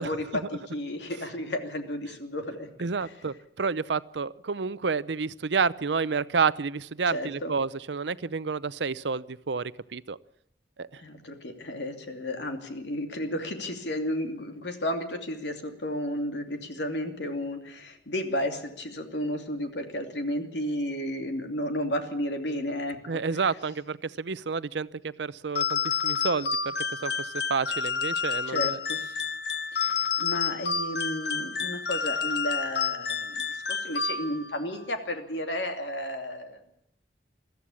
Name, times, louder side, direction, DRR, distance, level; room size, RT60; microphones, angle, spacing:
voice 1, 0.0-2.7 3.0-3.1 7.1-7.5 11.0-23.0 28.5-29.0 29.7-36.6, left 1 dB, 85° left, 5 dB, 2.8 m, -33 dB
voice 2, 2.8-10.2 10.8-10.9 23.1-26.7 27.0-28.8, right 5 dB, 85° right, 17 dB, 0.7 m, -30 dB
sound 1, 25.6-34.6, left 6 dB, 65° left, 0.9 m, -29 dB
22.0 x 14.0 x 8.5 m, 0.78 s
head